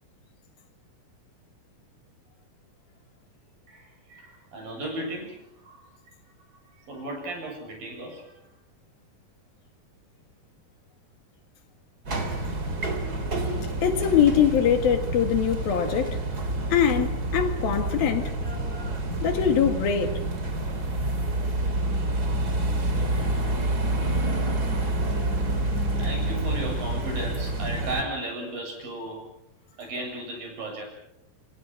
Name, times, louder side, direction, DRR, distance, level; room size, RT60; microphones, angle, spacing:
voice 1, 3.7-5.4 5.6-5.8 6.9-8.3 25.1-25.3 26.0-29.2 29.8-30.8, right 1 dB, 65° right, 9.4 m, -35 dB
sound 1, 12.1-28.0, right 1 dB, 25° right, 3.2 m, -28 dB
voice 2, 13.8-16.2 16.7-18.3 19.2-20.2, left 8 dB, 75° left, 3.9 m, -22 dB
29.0 x 25.0 x 6.1 m
omnidirectional pair, 4.3 m